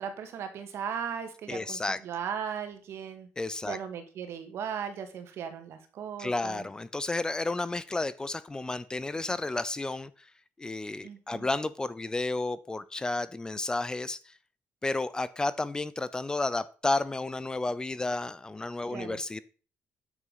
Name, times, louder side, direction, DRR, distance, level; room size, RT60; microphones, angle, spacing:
voice 1, 0.0-3.3 3.7-6.7 11.0-11.5 18.9-19.2, right 7 dB, 70° right, 7 dB, 2.2 m, -37 dB
voice 2, 1.5-2.0 3.4-3.8 6.2-10.1 10.6-14.3 14.8-19.4, left 2 dB, 15° left, 17 dB, 0.6 m, -32 dB
9.7 x 7.5 x 5.7 m, 0.38 s
cardioid pair, 120°, 5 cm